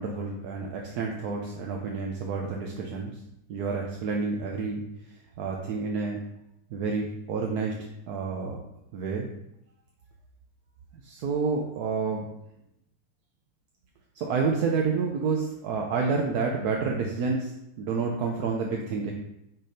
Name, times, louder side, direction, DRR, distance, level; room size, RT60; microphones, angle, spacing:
voice 1, 0.0-3.1 3.5-4.8 5.4-6.2 6.7-8.6 8.9-9.3 11.0-12.3 14.1-17.5 17.8-19.1, right 4 dB, 65° right, 1 dB, 1.0 m, -29 dB
6.4 x 4.3 x 5.1 m, 0.80 s
omnidirectional pair, 2.2 m